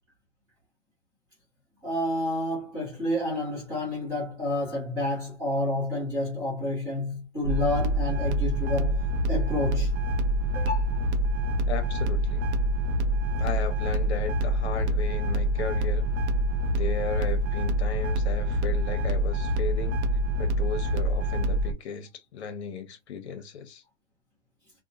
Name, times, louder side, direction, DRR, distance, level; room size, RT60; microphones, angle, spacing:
voice 1, 1.8-9.0 9.3-9.9 10.5-11.0, left 1 dB, 10° right, 0.8 m, -29 dB
sound 1, 7.4-21.7, right 1 dB, 75° right, 0.6 m, -26 dB
voice 2, 11.7-12.4 13.4-16.1 16.8-20.0 20.4-23.8, left 6 dB, 65° left, 0.8 m, -35 dB
2.8 x 2.2 x 2.5 m
supercardioid pair, 180°, 35 cm